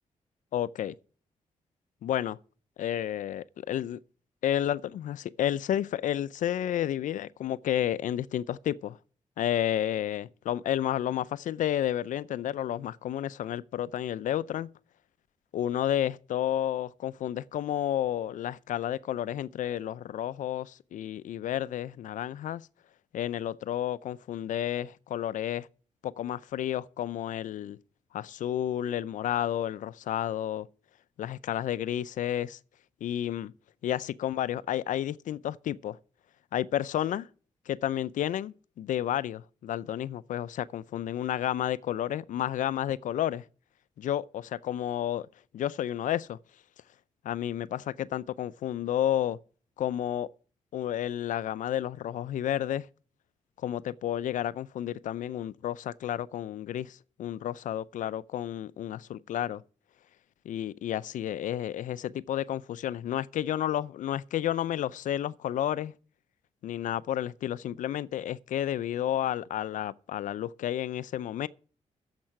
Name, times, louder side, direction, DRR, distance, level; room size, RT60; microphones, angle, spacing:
voice 1, 0.5-1.0 2.0-2.4 2.8-4.0 4.4-9.0 9.4-14.7 15.5-22.6 23.1-25.7 26.0-27.8 28.1-30.7 31.2-32.6 33.0-33.5 33.8-36.0 36.5-37.3 37.7-43.4 44.0-45.3 45.5-46.4 47.2-49.4 49.8-50.3 50.7-52.9 53.6-59.6 60.5-65.9 66.6-71.5, left 11 dB, 85° left, 0.5 m, -31 dB
10.5 x 7.4 x 8.8 m
cardioid pair, 85°, 13 cm